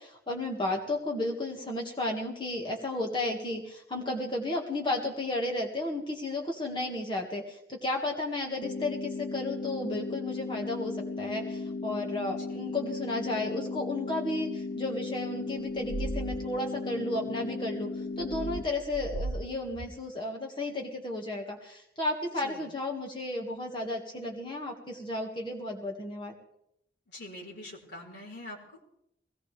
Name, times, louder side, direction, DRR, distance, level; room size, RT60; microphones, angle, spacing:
voice 1, 0.0-17.9 18.2-26.3, left 2 dB, 25° left, 0 dB, 1.9 m, -33 dB
sound 1, 8.6-18.6, left 3 dB, 60° left, 0.6 m, -36 dB
sound 2, 15.8-16.4 18.2-19.4 19.7-19.9, right 2 dB, 90° right, 0.9 m, -35 dB
voice 2, 22.4-22.7 27.1-28.9, left 1 dB, 75° left, -2 dB, 4.4 m, -45 dB
22.0 x 18.0 x 3.4 m, 0.78 s
head